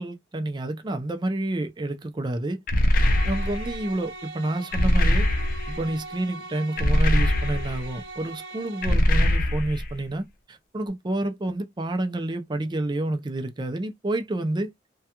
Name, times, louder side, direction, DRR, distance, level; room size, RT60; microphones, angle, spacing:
voice 1, 0.0-2.6 3.2-5.3 5.7-14.7, right 1 dB, 25° right, 0.5 m, -29 dB
sound 1, 2.7-3.8 4.7-5.8 6.8-7.9 8.8-9.9, equal, 50° left, 0.5 m, -21 dB
sound 2, 2.9-8.9, right 2 dB, 70° right, 0.6 m, -40 dB
2.3 x 2.2 x 2.8 m
head